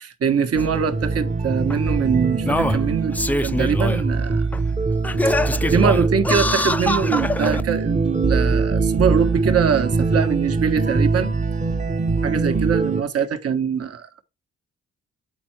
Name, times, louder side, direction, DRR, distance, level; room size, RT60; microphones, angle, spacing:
voice 1, 0.0-4.5 5.7-11.3 12.2-14.2, right 7 dB, 50° right, 1.1 m, -23 dB
sound 1, 0.5-13.0, right 3 dB, 25° right, 0.9 m, -23 dB
Singing, 0.6-0.7 1.7-1.8 2.4-4.0 4.5-4.6 5.0-7.6 8.4-8.5, left 1 dB, 5° left, 0.4 m, -24 dB
8.3 x 4.4 x 4.5 m
supercardioid pair, 55°, 30 cm